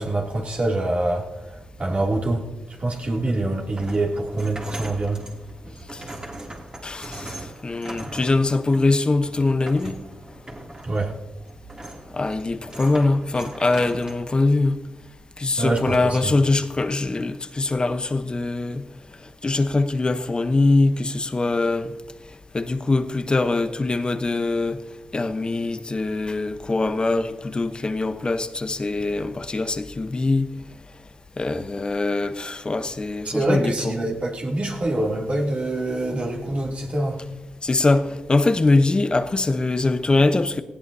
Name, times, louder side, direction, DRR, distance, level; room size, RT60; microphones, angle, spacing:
voice 1, 0.0-5.2 5.6-5.7 10.8-11.1 15.6-16.3 33.2-37.3, right 2 dB, 50° right, 2.7 m, -25 dB
sound 1, 2.9-14.2, right 1 dB, 25° right, 2.7 m, -40 dB
voice 2, 6.8-10.0 12.1-14.8 15.4-18.8 19.4-21.9 22.5-24.8 25.1-30.5 31.4-34.0 37.6-40.6, left 3 dB, 35° left, 0.9 m, -22 dB
18.5 x 15.5 x 2.8 m
supercardioid pair, 50°, 3 cm